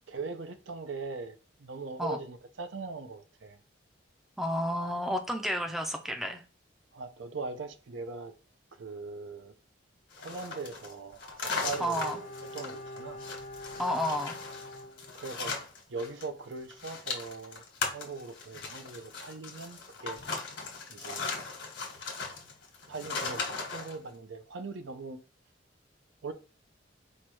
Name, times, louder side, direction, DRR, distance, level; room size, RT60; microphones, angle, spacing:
voice 1, 0.1-3.6 6.9-8.3 8.8-9.5 10.2-13.2 15.2-15.6 15.9-17.6 17.9-20.2 20.9-21.3 22.9-25.2 26.2-26.3, right 4 dB, 75° right, 0.6 m, -40 dB
voice 2, 4.4-6.4 11.8-12.2 13.8-14.4, equal, ahead, 0.5 m, -31 dB
sound 1, 10.1-16.3 16.5-24.0, left 4 dB, 70° left, 1.3 m, -38 dB
Bowed string instrument, 11.9-15.7 16.0-16.1, left 1 dB, 35° left, 0.6 m, -45 dB
4.5 x 2.3 x 4.4 m
head